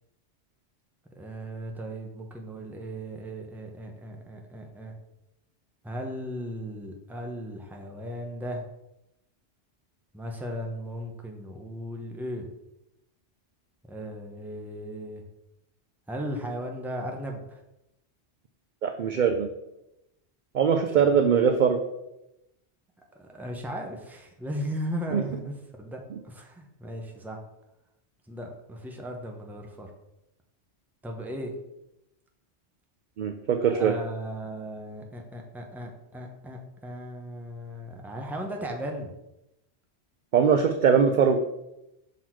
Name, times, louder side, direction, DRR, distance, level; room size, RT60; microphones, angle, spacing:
voice 1, 1.2-4.9 5.8-8.6 10.1-12.5 13.9-15.2 16.1-17.6 21.0-21.2 23.1-27.4 28.3-29.9 31.0-31.5 33.7-39.1, equal, ahead, 2 dB, 0.7 m, -36 dB
voice 2, 18.8-19.5 20.5-21.8 25.1-25.2 33.2-33.9 40.3-41.4, right 7 dB, 60° right, 6 dB, 0.5 m, -21 dB
6.0 x 4.1 x 4.6 m, 0.89 s
omnidirectional pair, 1.2 m